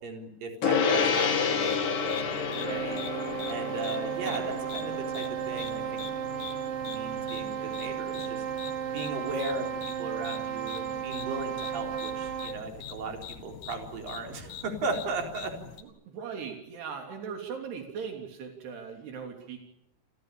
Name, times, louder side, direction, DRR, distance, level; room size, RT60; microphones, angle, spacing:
voice 1, 0.0-3.0 3.5-6.1 6.8-8.4 8.9-15.6, right 3 dB, 60° right, 3 dB, 5.8 m, -36 dB
Gong, 0.6-10.3, left 6 dB, 90° left, 5.3 m, -32 dB
sound 1, 0.9-15.8, left 8 dB, 70° left, 3.9 m, -44 dB
sound 2, 2.4-12.7, right 9 dB, 40° right, 3.4 m, -34 dB
voice 2, 4.1-4.6 15.6-19.6, right 6 dB, 80° right, 3 dB, 5.4 m, -39 dB
29.5 x 24.5 x 7.0 m, 0.80 s
omnidirectional pair, 4.6 m